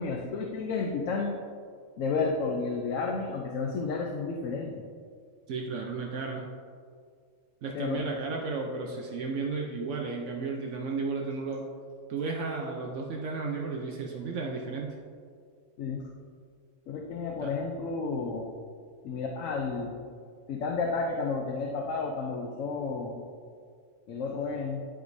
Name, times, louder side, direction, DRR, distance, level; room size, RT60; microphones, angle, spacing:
voice 1, 0.0-1.3 2.0-4.8 7.7-8.0 15.8-16.0 16.9-18.5 19.0-20.1 20.5-23.2 24.1-24.8, left 4 dB, 80° left, 1 dB, 1.0 m, -31 dB
voice 2, 5.5-6.4 7.6-11.6 12.1-14.9 17.4-17.5, right 4 dB, 70° right, 1 dB, 1.0 m, -33 dB
11.5 x 4.8 x 2.7 m, 2.1 s
omnidirectional pair, 1.3 m